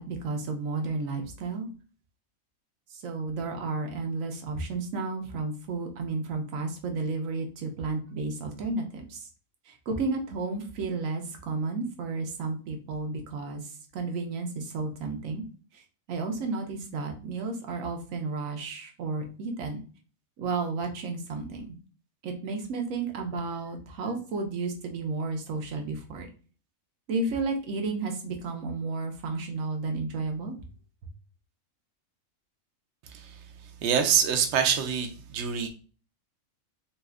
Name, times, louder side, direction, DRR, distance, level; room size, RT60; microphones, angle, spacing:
voice 1, 0.0-1.7 2.9-9.3 9.7-15.4 15.7-15.8 16.1-19.8 20.4-21.7 22.2-26.3 27.1-30.5, right 3 dB, 80° right, 3 dB, 1.1 m, -32 dB
voice 2, 33.8-35.7, right 8 dB, 65° right, 5 dB, 0.8 m, -25 dB
4.1 x 2.4 x 2.3 m, 0.39 s
omnidirectional pair, 1.4 m